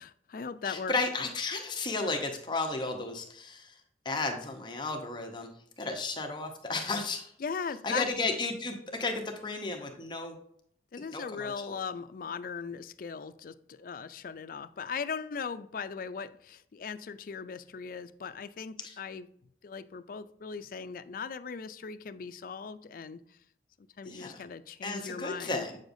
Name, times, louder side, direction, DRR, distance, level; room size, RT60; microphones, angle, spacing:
voice 1, 0.0-0.9 7.4-8.1 10.9-19.3 19.6-23.4 24.0-25.7, left 5 dB, 50° left, 0.4 m, -39 dB
voice 2, 0.6-3.7 4.0-5.5 5.8-7.3 7.8-10.4 11.1-11.5 18.8-18.9 24.1-24.4 24.8-25.8, left 3 dB, 25° left, 0.8 m, -33 dB
7.9 x 6.5 x 2.6 m
head